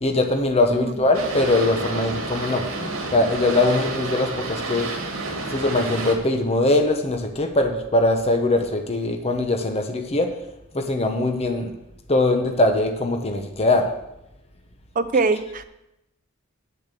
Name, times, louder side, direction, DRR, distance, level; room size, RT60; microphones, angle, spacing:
voice 1, 0.0-2.6 3.1-4.9 5.5-10.3 10.7-11.7 12.1-13.9, left 2 dB, 30° left, 4 dB, 0.9 m, -21 dB
Boat Water vehicle, 1.1-6.1, right 3 dB, 65° right, 2.0 m, -30 dB
voice 2, 15.0-15.6, right 3 dB, 40° right, 9 dB, 0.6 m, -22 dB
8.7 x 7.1 x 6.7 m, 0.87 s
head